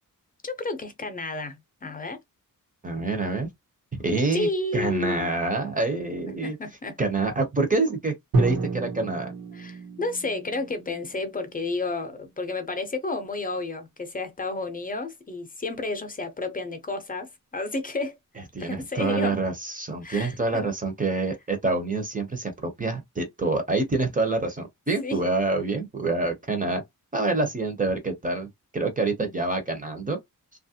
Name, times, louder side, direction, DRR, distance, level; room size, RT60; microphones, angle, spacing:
voice 1, 0.4-2.2 4.3-5.3 6.3-7.0 9.5-18.2 18.6-19.4 20.0-20.7 25.0-25.2, left 2 dB, 25° left, 0.7 m, -31 dB
voice 2, 2.8-3.5 4.0-6.6 7.0-9.3 18.5-26.8 27.1-28.5 28.7-30.2, right 3 dB, 25° right, 0.7 m, -26 dB
Drum, 8.3-12.1, right 2 dB, 85° right, 1.1 m, -30 dB
3.0 x 2.4 x 2.7 m
wide cardioid pair, 160°, 34 cm